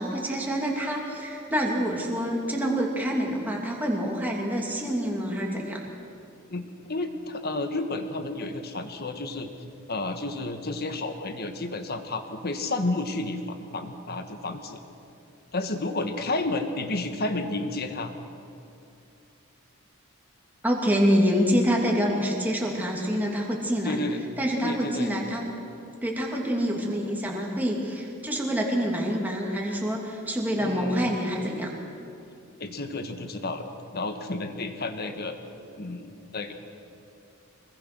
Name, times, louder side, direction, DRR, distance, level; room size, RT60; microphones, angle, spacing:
voice 1, 0.0-5.8 20.6-24.0 24.4-25.4 26.0-31.7, equal, 10° right, -1 dB, 2.8 m, -26 dB
voice 2, 6.5-14.8 15.5-18.1 23.8-24.2 24.6-25.2 30.6-31.2 32.6-35.4 35.8-36.5, left 2 dB, 45° left, 7 dB, 1.5 m, -31 dB
24.0 x 21.0 x 6.2 m, 2.6 s
head